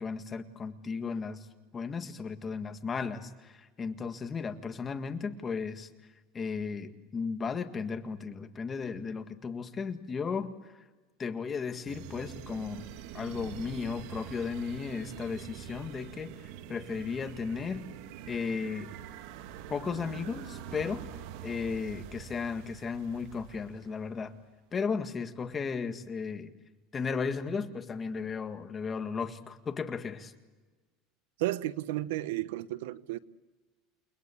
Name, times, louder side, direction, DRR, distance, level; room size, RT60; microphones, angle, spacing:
voice 1, 0.0-1.5 1.7-5.9 6.3-10.7 11.2-12.9 13.1-16.3 16.7-17.9 18.3-18.9 19.7-21.1 21.4-24.3 24.7-26.5 26.9-30.3, left 5 dB, 20° left, 1.8 m, -35 dB
sound 1, 11.9-24.2, right 10 dB, 70° right, 1.8 m, -45 dB
voice 2, 31.4-33.2, right 16 dB, 90° right, 1.0 m, -33 dB
29.5 x 21.5 x 8.5 m
supercardioid pair, 140°, 0 cm